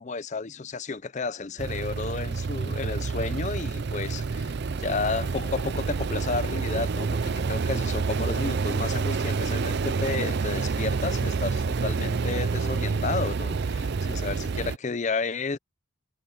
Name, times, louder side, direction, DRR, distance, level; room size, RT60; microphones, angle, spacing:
voice 1, 0.0-15.6, left 4 dB, 35° left, 0.5 m, -32 dB
sound 1, 1.6-14.8, right 4 dB, 50° right, 0.5 m, -28 dB
head